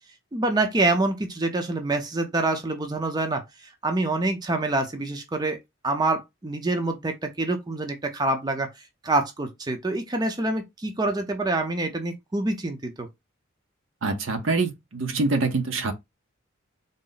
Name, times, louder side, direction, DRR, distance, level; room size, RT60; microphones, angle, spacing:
voice 1, 0.3-3.4 3.8-5.6 5.8-8.7 9.0-13.1, right 2 dB, 20° right, 0.5 m, -26 dB
voice 2, 14.0-15.9, right 3 dB, 65° right, 0.7 m, -25 dB
3.9 x 2.0 x 3.9 m
head